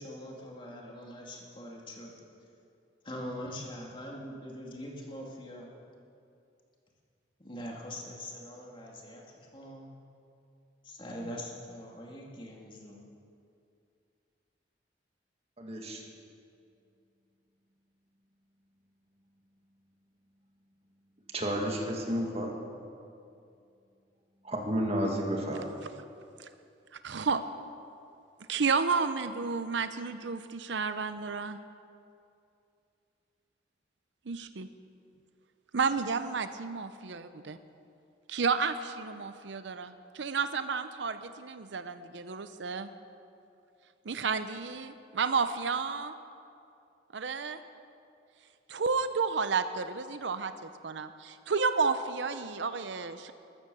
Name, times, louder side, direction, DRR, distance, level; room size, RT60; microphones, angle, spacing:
voice 1, 0.0-2.1 3.0-5.7 7.4-9.9 10.8-13.0, equal, 30° left, -2 dB, 2.4 m, -43 dB
voice 2, 15.6-16.0 21.3-22.6 24.4-25.6, equal, 35° right, 1 dB, 2.1 m, -31 dB
voice 3, 27.0-27.4 28.5-31.6 34.3-34.7 35.7-37.6 38.3-42.9 44.0-46.1 47.1-47.6 48.7-53.3, right 5 dB, 80° right, 11 dB, 0.7 m, -31 dB
13.5 x 13.5 x 6.9 m, 2.5 s
head